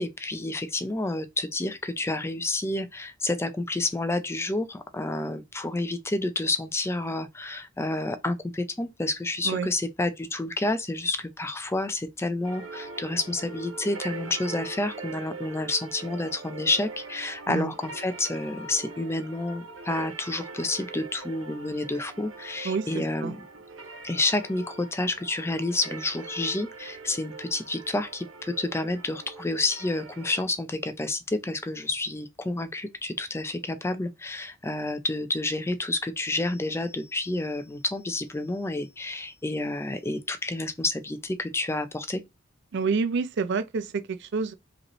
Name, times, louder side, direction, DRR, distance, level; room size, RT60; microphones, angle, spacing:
voice 1, 0.0-23.4 24.0-42.2, left 2 dB, 15° left, 0.4 m, -29 dB
sound 1, 12.4-30.4, right 4 dB, 85° right, 1.2 m, -42 dB
voice 2, 42.7-44.5, right 4 dB, 60° right, 0.4 m, -27 dB
5.0 x 3.1 x 3.0 m
head